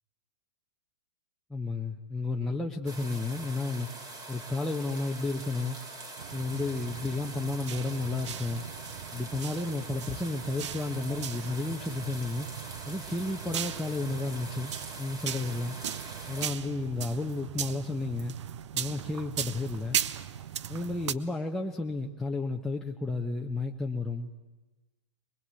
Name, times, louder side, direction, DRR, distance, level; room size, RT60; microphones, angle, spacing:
voice 1, 1.5-3.9 4.3-5.8 6.3-8.6 9.1-12.5 12.8-14.7 15.0-15.8 16.3-18.3 18.7-20.0 20.7-24.4, left 3 dB, 5° left, -1 dB, 1.1 m, -32 dB
sound 1, 2.9-16.5, right 2 dB, 25° right, 3.4 m, -44 dB
sound 2, 6.2-21.1, right 10 dB, 70° right, 0.8 m, -38 dB
22.5 x 20.5 x 8.5 m, 1.2 s
hypercardioid pair, 115°, 16 cm